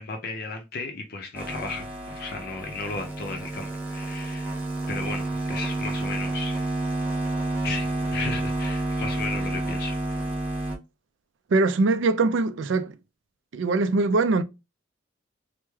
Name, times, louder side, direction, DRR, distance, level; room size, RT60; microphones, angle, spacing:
voice 1, 0.0-4.6 4.9-6.6 7.6-10.0, left 3 dB, 50° left, 0.5 m, -35 dB
sound 1, 1.3-10.8, right 2 dB, 10° right, 0.6 m, -29 dB
voice 2, 11.5-13.0 13.5-14.4, right 3 dB, 70° right, 0.4 m, -22 dB
3.1 x 2.1 x 3.3 m
head